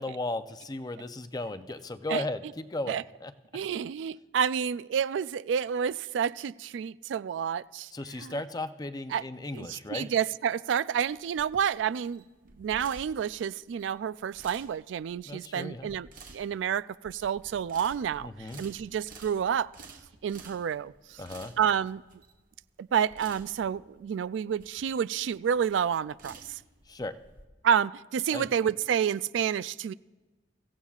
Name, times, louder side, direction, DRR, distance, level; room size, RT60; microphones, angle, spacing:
voice 1, 0.0-3.3 7.9-10.1 15.3-15.9 18.2-18.6 21.2-21.5 26.9-27.1 28.3-28.5, left 2 dB, 20° left, 0.6 m, -36 dB
voice 2, 3.5-7.9 8.2-8.4 9.1-9.2 9.5-12.2 12.6-19.7 20.2-21.2 21.6-22.0 22.8-26.6 27.6-29.9, right 8 dB, 80° right, 0.3 m, -29 dB
sound 1, 10.9-27.4, right 4 dB, 50° right, 1.5 m, -52 dB
24.0 x 15.5 x 2.4 m
head